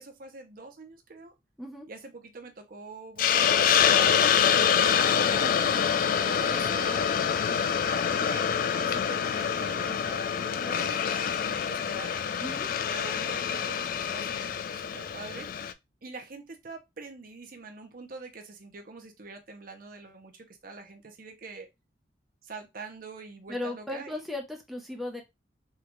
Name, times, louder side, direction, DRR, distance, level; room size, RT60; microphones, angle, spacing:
voice 1, 0.0-1.3 1.9-5.5 6.2-7.1 7.4-8.5 8.9-12.2 12.9-15.5 16.0-21.7 22.4-24.2, right 3 dB, 55° right, 0.7 m, -44 dB
Hiss, 3.2-15.7, left 7 dB, 50° left, 0.3 m, -26 dB
voice 2, 23.5-25.2, left 1 dB, ahead, 0.6 m, -36 dB
3.7 x 2.3 x 3.0 m
head